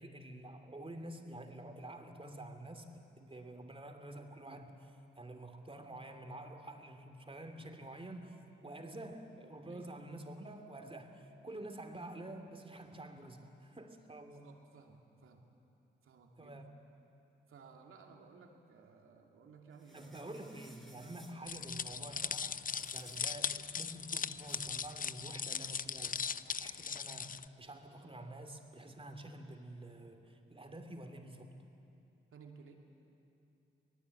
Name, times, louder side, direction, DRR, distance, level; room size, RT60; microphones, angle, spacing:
voice 1, 0.0-2.9 3.2-14.5 16.4-16.8 19.9-31.6, right 1 dB, 25° right, 5 dB, 2.9 m, -48 dB
voice 2, 9.7-10.1 14.2-15.5 16.0-16.6 17.5-20.1 32.3-32.7, right 5 dB, 80° right, 2 dB, 2.6 m, -57 dB
sound 1, 19.7-21.3 22.7-23.3 24.5-24.6, equal, ahead, 4.4 m, -60 dB
sound 2, 21.5-27.4, left 6 dB, 40° left, 0.6 m, -39 dB
25.0 x 19.0 x 8.5 m, 2.8 s
supercardioid pair, 55°, 21 cm